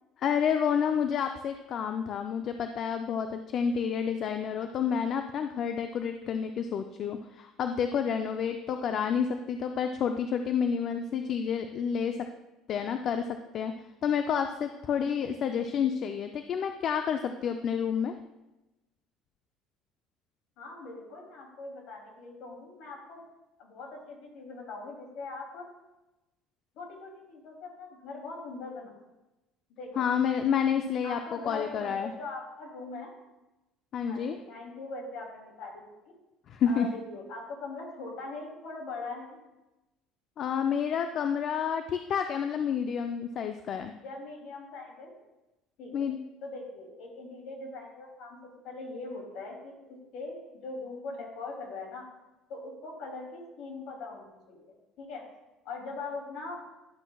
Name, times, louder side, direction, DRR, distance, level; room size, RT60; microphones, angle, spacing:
voice 1, 0.2-12.3 12.7-13.3 13.5-13.7 14.0-18.1 30.0-32.1 33.9-34.4 36.5-36.9 40.4-43.9 45.9-46.2, left 7 dB, 50° left, 6 dB, 0.4 m, -29 dB
voice 2, 20.6-23.2 23.6-25.7 26.8-28.9 29.7-30.0 30.7-33.1 34.0-36.1 36.6-39.4 44.0-45.1 45.8-46.1 46.4-50.4 50.6-52.1 52.5-55.2 55.6-56.6, left 3 dB, 65° left, 0 dB, 2.7 m, -41 dB
11.0 x 7.2 x 2.3 m, 1.0 s
cardioid pair, 125°, 0 cm